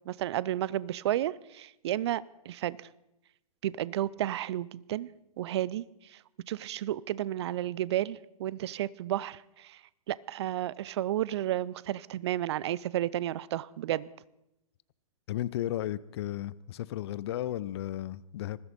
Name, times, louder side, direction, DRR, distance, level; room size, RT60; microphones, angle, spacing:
voice 1, 0.1-2.9 3.6-5.1 5.4-5.8 6.1-6.2 6.5-9.8 10.1-14.1, right 13 dB, 45° right, 21 dB, 0.5 m, -32 dB
voice 2, 15.3-18.6, left 13 dB, 45° left, 19 dB, 0.5 m, -34 dB
20.5 x 15.0 x 4.1 m, 0.86 s
figure-of-eight pair, 115°, 19 cm